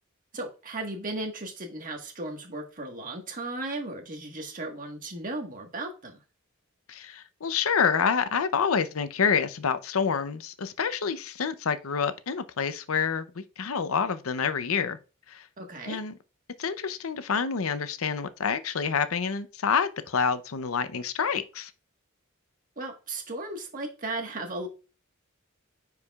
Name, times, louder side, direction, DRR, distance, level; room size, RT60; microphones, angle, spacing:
voice 1, 0.3-6.2 15.6-16.0 22.8-24.7, right 2 dB, 40° right, 1.5 m, -36 dB
voice 2, 6.9-15.0 15.3-15.5 15.9-16.1 16.6-21.7, left 6 dB, 85° left, 0.6 m, -27 dB
9.7 x 4.8 x 2.4 m
head